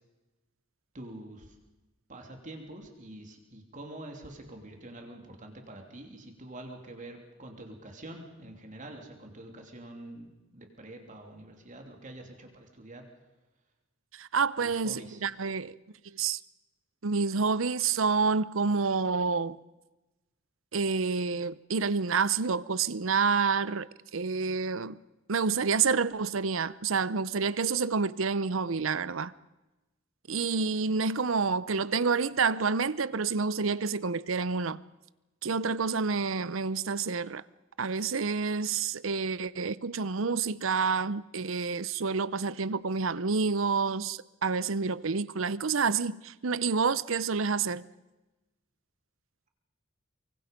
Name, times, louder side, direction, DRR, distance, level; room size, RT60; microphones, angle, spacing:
voice 1, 0.9-1.5 2.1-13.0 14.6-15.2, right 1 dB, 40° right, 3.1 m, -46 dB
voice 2, 14.1-15.7 16.0-16.4 17.0-19.6 20.7-25.0 25.3-29.3 30.3-34.8 35.4-37.4 37.8-47.9, right 5 dB, 80° right, 0.7 m, -28 dB
24.0 x 24.0 x 5.3 m
head